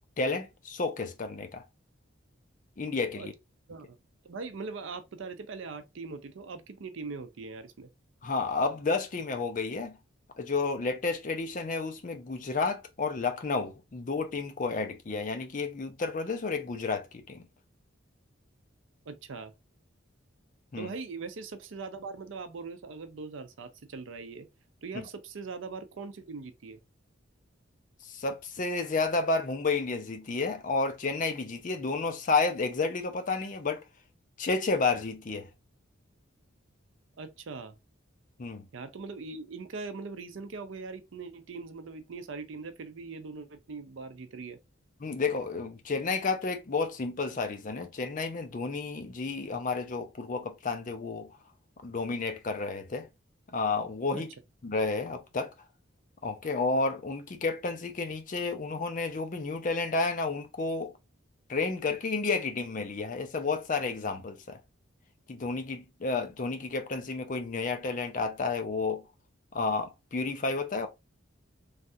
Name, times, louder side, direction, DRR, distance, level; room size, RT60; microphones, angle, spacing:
voice 1, 0.2-1.6 2.8-3.3 8.2-10.0 10.4-17.4 20.7-20.9 28.0-33.8 34.4-35.5 38.4-38.6 45.0-51.3 51.8-53.1 53.5-54.3 54.6-55.5 56.2-60.9 61.5-64.6 65.3-69.0 69.5-70.9, left 3 dB, 40° left, 0.5 m, -31 dB
voice 2, 4.2-7.9 19.1-19.5 20.8-24.5 24.8-26.8 37.2-37.7 38.7-44.6 54.1-54.2, right 4 dB, 70° right, 0.5 m, -41 dB
3.2 x 2.3 x 2.6 m
head